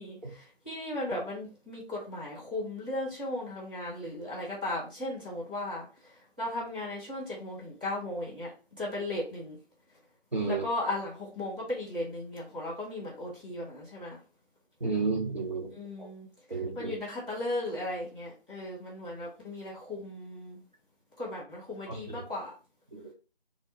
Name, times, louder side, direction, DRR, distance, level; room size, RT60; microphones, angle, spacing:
voice 1, 0.0-8.5 8.8-9.6 10.5-14.2 15.7-20.6 21.2-22.5, left 1 dB, 10° right, -12 dB, 1.1 m, -36 dB
voice 2, 10.3-10.6 14.8-15.7 16.0-16.1 16.5-16.9 21.9-22.2 22.9-23.1, right 4 dB, 45° right, -1 dB, 1.2 m, -32 dB
4.2 x 2.0 x 4.5 m, 0.33 s
figure-of-eight pair, 165°, 31 cm